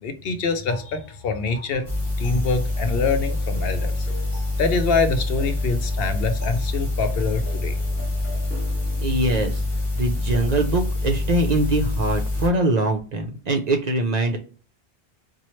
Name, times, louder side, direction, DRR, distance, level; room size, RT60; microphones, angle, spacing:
voice 1, 0.0-1.8 2.2-4.1 4.6-7.7, left 4 dB, 70° left, 8 dB, 0.8 m, -25 dB
sound 1, 0.7-9.0, equal, 15° right, 1.4 m, -45 dB
sound 2, 1.9-12.5, left 2 dB, 30° left, 1.4 m, -26 dB
voice 2, 9.0-9.6 10.0-14.4, right 2 dB, 55° right, 4 dB, 0.5 m, -23 dB
4.3 x 2.2 x 3.0 m, 0.39 s
omnidirectional pair, 1.1 m